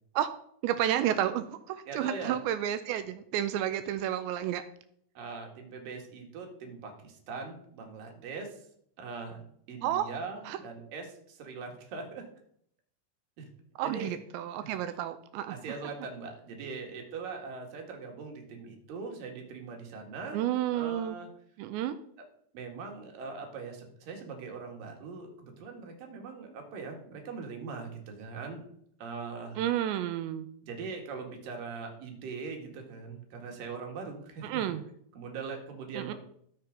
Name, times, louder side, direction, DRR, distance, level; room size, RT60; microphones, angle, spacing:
voice 1, 0.6-4.7 9.8-10.1 10.5-10.6 13.8-15.6 20.3-21.2 21.6-22.0 29.6-30.5 34.4-34.8 35.9-36.1, right 11 dB, 85° right, 10 dB, 2.6 m, -31 dB
voice 2, 1.9-2.4 5.1-8.7 9.0-12.2 13.4-13.5 13.8-14.1 14.6-14.7 15.5-20.4 20.7-21.3 22.5-28.6 29.0-29.6 30.6-34.6 35.1-36.1, right 4 dB, 55° right, 2 dB, 3.0 m, -41 dB
13.5 x 7.1 x 5.2 m, 0.67 s
omnidirectional pair, 5.7 m